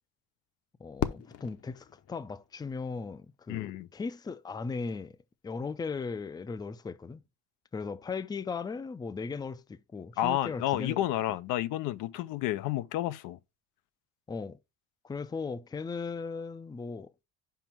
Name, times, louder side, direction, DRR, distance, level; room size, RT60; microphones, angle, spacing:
voice 1, 0.8-5.2 5.4-7.2 7.7-11.0 14.3-14.6 15.0-17.1, left 4 dB, 15° left, 0.4 m, -37 dB
Fireworks, 1.0-3.2, left 9 dB, 50° left, 0.8 m, -37 dB
voice 2, 3.5-3.9 10.2-13.4, left 14 dB, 90° left, 0.6 m, -30 dB
5.8 x 5.0 x 4.4 m
cardioid pair, 110°, 31 cm